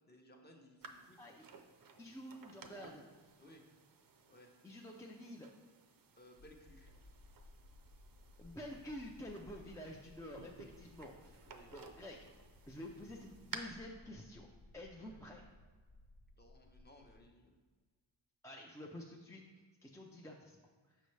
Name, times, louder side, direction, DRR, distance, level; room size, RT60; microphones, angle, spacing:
voice 1, 0.1-1.2 3.4-3.6 4.3-4.5 6.2-6.9 11.5-11.7 15.0-15.2 16.4-17.5, left 1 dB, 25° left, 2 dB, 0.7 m, -61 dB
sound 1, 0.8-13.6, right 5 dB, 50° right, 0.5 m, -56 dB
voice 2, 1.2-1.5 2.0-3.1 4.6-5.5 8.4-11.4 11.7-12.2 12.7-14.5 14.7-15.4 18.4-19.4 19.8-20.6, left 1 dB, 5° left, -1 dB, 0.3 m, -49 dB
sound 2, 6.4-17.3, left 1 dB, 75° left, 0.9 m, -61 dB
6.7 x 5.2 x 3.2 m, 1.4 s
wide cardioid pair, 140°, 45 cm